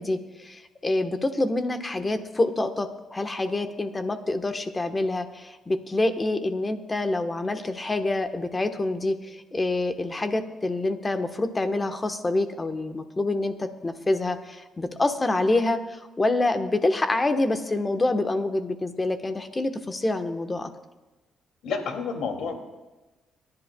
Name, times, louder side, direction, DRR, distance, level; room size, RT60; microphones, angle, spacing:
voice 1, 0.0-20.7, left 2 dB, 25° left, 7 dB, 1.1 m, -26 dB
voice 2, 21.6-22.6, left 5 dB, 80° left, 3 dB, 2.4 m, -29 dB
26.5 x 11.0 x 2.3 m, 1.1 s
cardioid pair, 90°, 0 cm